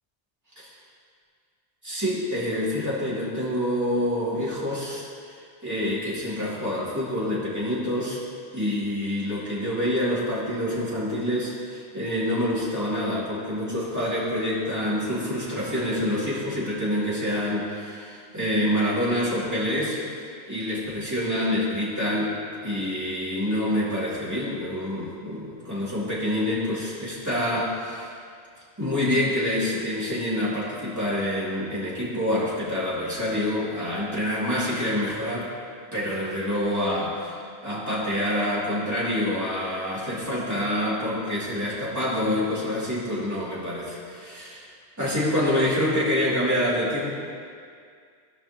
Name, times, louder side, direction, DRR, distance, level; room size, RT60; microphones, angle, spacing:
voice 1, 1.8-5.4 5.6-8.2 8.5-22.4 22.6-28.1 28.8-35.5 35.9-44.7 45.0-47.1, left 1 dB, 15° right, -9 dB, 2.3 m, -27 dB
16.0 x 5.5 x 2.8 m, 2.2 s
omnidirectional pair, 1.1 m